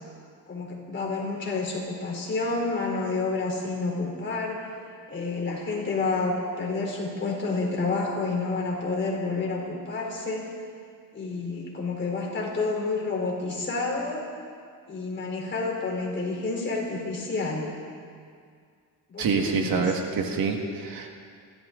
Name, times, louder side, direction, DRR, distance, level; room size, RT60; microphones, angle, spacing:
voice 1, 0.5-4.6 5.1-10.5 11.1-14.3 14.9-17.7 19.1-19.9, left 3 dB, 30° left, -3 dB, 3.8 m, -29 dB
voice 2, 19.2-21.1, right 5 dB, 70° right, 2 dB, 2.0 m, -26 dB
28.5 x 12.5 x 3.9 m, 2.2 s
cardioid pair, 155°, 36 cm